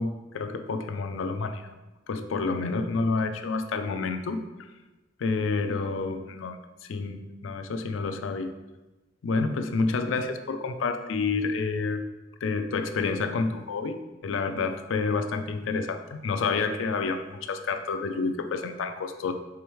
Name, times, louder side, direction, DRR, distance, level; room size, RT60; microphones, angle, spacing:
voice 1, 0.0-1.6 2.1-4.4 5.2-6.6 6.9-8.5 9.2-12.0 12.4-14.0 14.2-19.3, left 4 dB, 85° left, 8 dB, 0.4 m, -29 dB
4.8 x 3.4 x 3.1 m, 1.1 s
head